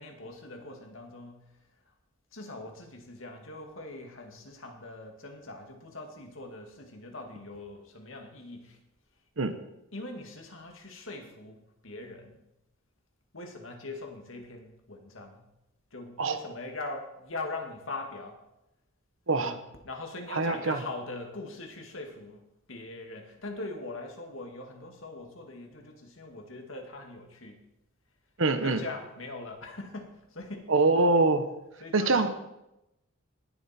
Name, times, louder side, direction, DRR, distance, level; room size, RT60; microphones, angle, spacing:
voice 1, 0.0-1.5 2.3-8.8 9.9-12.4 13.3-15.5 15.9-18.4 19.4-27.6 28.6-30.7 31.8-32.3, left 2 dB, 75° left, 3 dB, 2.1 m, -41 dB
voice 2, 20.3-20.8 28.4-28.8 30.7-31.4 31.9-32.3, right 3 dB, 75° right, 9 dB, 1.1 m, -24 dB
19.0 x 7.3 x 4.4 m, 0.89 s
head